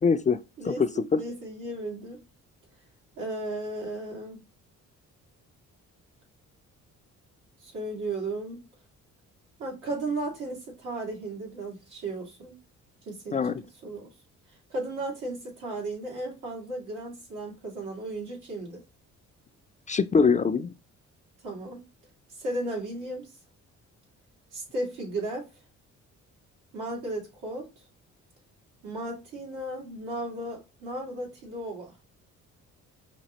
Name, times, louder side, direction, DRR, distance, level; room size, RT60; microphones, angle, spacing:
voice 1, 0.0-0.4 0.7-1.2 13.3-13.5 19.9-20.7, left 5 dB, 25° left, 0.3 m, -23 dB
voice 2, 0.6-2.2 3.2-4.4 7.6-8.6 9.6-12.6 13.1-13.6 13.8-14.1 14.7-18.8 21.4-21.9 22.4-23.3 24.5-25.5 26.7-27.7 28.8-31.9, right 2 dB, 85° right, 2.1 m, -35 dB
5.1 x 2.7 x 2.9 m
cardioid pair, 90°, 30 cm